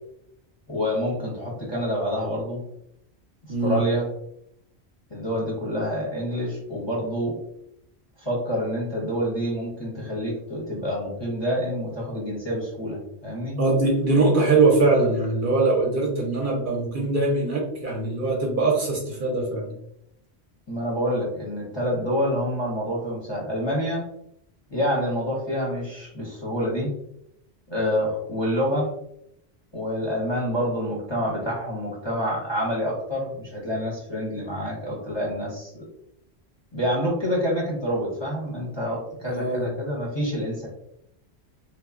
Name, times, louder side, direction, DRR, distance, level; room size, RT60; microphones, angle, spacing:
voice 1, 0.7-2.6 3.6-4.1 5.1-7.4 8.2-13.6 20.7-24.0 24.7-26.9 27.7-28.9 29.7-35.8 36.7-40.7, equal, 30° left, -5 dB, 0.6 m, -27 dB
voice 2, 3.5-3.8 13.6-19.7 39.3-39.7, right 3 dB, 60° right, -1 dB, 0.7 m, -22 dB
3.0 x 2.0 x 2.3 m, 0.76 s
omnidirectional pair, 1.1 m